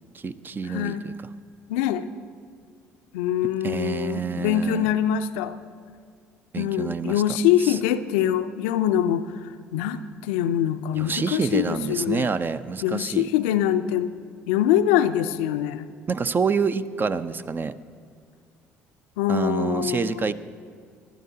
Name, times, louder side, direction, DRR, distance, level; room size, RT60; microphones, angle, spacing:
voice 1, 0.1-1.1 3.4-4.9 6.5-7.2 7.6-7.8 10.9-13.3 16.1-17.7 19.3-20.3, right 5 dB, 30° right, 13 dB, 0.6 m, -27 dB
voice 2, 0.7-1.0 1.7-2.1 3.1-5.6 6.6-9.3 9.7-12.3 12.8-14.1 14.5-15.9 19.2-20.3, left 10 dB, 75° left, 10 dB, 0.5 m, -24 dB
26.0 x 12.0 x 2.8 m, 2.2 s
hypercardioid pair, 55°, 7 cm